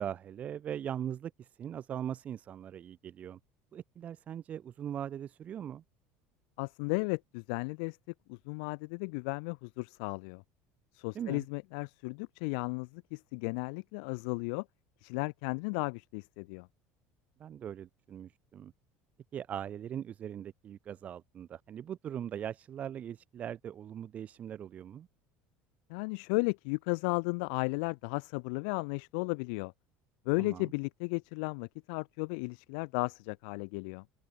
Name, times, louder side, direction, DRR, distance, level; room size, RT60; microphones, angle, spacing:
voice 1, 0.0-3.4 3.7-5.8 11.1-11.5 17.4-18.7 19.3-25.1 30.4-30.7, right 9 dB, 30° right, 3.8 m, -40 dB
voice 2, 6.6-8.0 8.3-10.4 10.9-14.6 15.0-16.7 25.9-29.7 30.3-34.0, left 35 dB, 80° left, 2.4 m, -34 dB
open air
cardioid pair, 175°, 5 cm